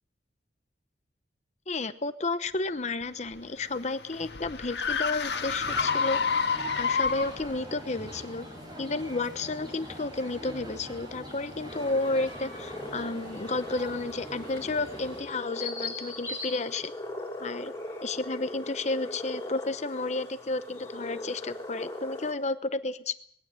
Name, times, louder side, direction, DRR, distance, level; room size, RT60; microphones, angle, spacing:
voice 1, 1.7-6.2 6.7-8.5 8.8-16.9 17.4-17.7 18.0-23.1, left 3 dB, 40° left, 12 dB, 0.8 m, -32 dB
sound 1, 3.0-7.5, left 5 dB, 65° left, 1.9 m, -29 dB
sound 2, 5.7-15.2, equal, 25° right, 7.6 m, -43 dB
sound 3, 11.7-22.3, left 2 dB, 15° left, 4.6 m, -39 dB
21.0 x 17.0 x 7.8 m, 0.68 s
head